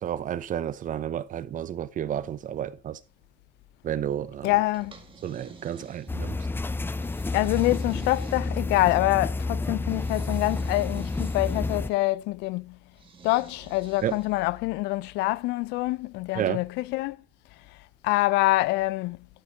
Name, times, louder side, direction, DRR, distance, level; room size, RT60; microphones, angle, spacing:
voice 1, 0.0-3.0 3.8-4.5 5.2-6.4 14.0-14.2 16.3-16.6, right 10 dB, 50° right, 0.8 m, -31 dB
voice 2, 4.4-4.9 7.3-12.8 13.2-17.2 18.0-19.2, left 19 dB, 90° left, 0.5 m, -25 dB
sound 1, 4.7-6.4 7.0-9.0 9.8-11.7 12.9-14.5, right 5 dB, 30° right, 1.9 m, -51 dB
sound 2, 6.1-11.9, left 3 dB, 10° left, 0.5 m, -30 dB
12.5 x 5.2 x 4.0 m
cardioid pair, 110°, 17 cm